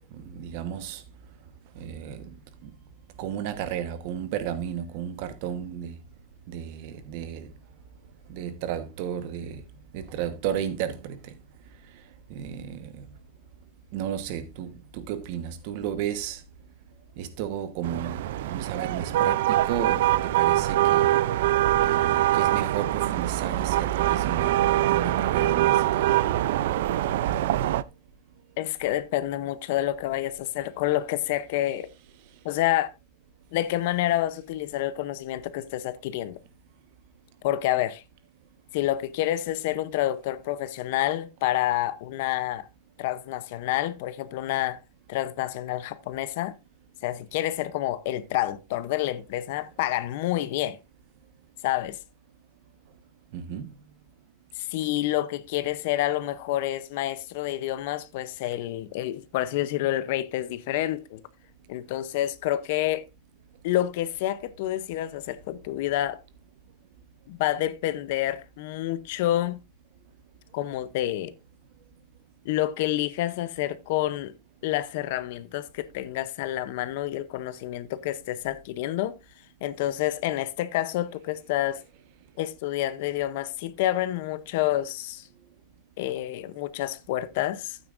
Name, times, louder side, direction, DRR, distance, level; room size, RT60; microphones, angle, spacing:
voice 1, 0.2-1.0 1.8-2.3 3.2-5.9 6.5-7.5 8.3-9.6 9.9-11.3 12.3-13.0 13.9-16.4 17.2-18.2 18.5-21.1 21.9-26.1 53.3-53.7, right 9 dB, 40° right, 1.1 m, -33 dB
sound 1, 17.8-27.8, right 14 dB, 60° right, 0.4 m, -23 dB
voice 2, 28.6-31.9 32.4-32.9 33.5-36.4 37.4-38.0 38.7-42.7 43.0-44.8 45.1-46.5 47.0-50.8 51.6-52.0 54.6-61.2 61.7-63.1 63.6-66.2 67.3-69.6 70.5-71.3 72.4-74.3 74.6-79.1 79.6-81.8 82.4-85.3 86.0-87.8, left 14 dB, 50° left, 0.6 m, -28 dB
12.0 x 9.1 x 2.5 m
supercardioid pair, 180°, 0 cm